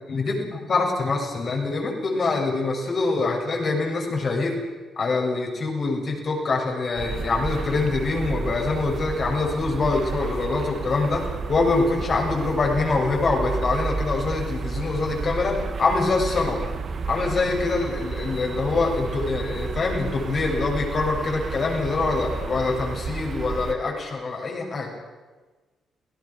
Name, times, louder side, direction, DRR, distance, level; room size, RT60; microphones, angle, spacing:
voice 1, 0.1-4.6 5.0-16.6 17.1-24.9, left 3 dB, 50° left, 0 dB, 7.1 m, -24 dB
sound 1, 7.0-23.7, right 5 dB, 55° right, 1.9 m, -32 dB
28.5 x 17.5 x 6.4 m, 1.3 s
supercardioid pair, 50°, 0 cm